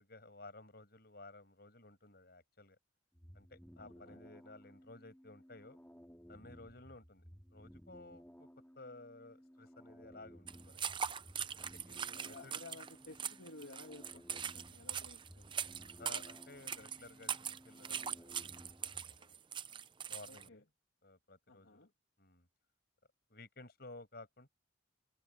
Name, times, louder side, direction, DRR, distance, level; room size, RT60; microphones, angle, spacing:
voice 1, 0.0-2.8 3.3-5.8 6.3-7.2 7.5-8.5 8.8-11.0 11.6-12.6 16.0-19.4 20.1-20.6 21.0-21.9 22.2-22.5 23.3-24.5, left 2 dB, 55° left, 6.9 m, -55 dB
sound 1, 3.1-19.2, equal, 10° left, 3.7 m, -58 dB
voice 2, 3.8-4.2 11.9-15.6 20.2-20.6 21.5-21.9, left 2 dB, 85° left, 2.9 m, -55 dB
sound 2, 10.5-20.5, right 8 dB, 25° right, 0.6 m, -42 dB
head